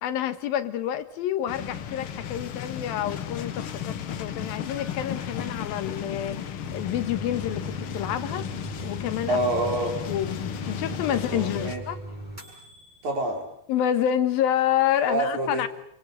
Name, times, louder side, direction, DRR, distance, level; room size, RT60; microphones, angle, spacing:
voice 1, 0.0-6.4 6.7-8.5 8.8-9.4 10.1-10.4 10.7-12.0 13.7-15.7, left 10 dB, 80° left, 12 dB, 3.0 m, -28 dB
sound 1, 1.5-11.8, left 8 dB, 60° left, 1.5 m, -34 dB
sound 2, 6.6-13.2, right 1 dB, 10° right, 6.7 m, -39 dB
voice 2, 9.3-10.1 11.1-11.8 13.0-13.5 15.1-15.7, right 1 dB, 55° right, 3 dB, 5.7 m, -27 dB
27.5 x 25.0 x 6.6 m, 0.73 s
omnidirectional pair, 4.2 m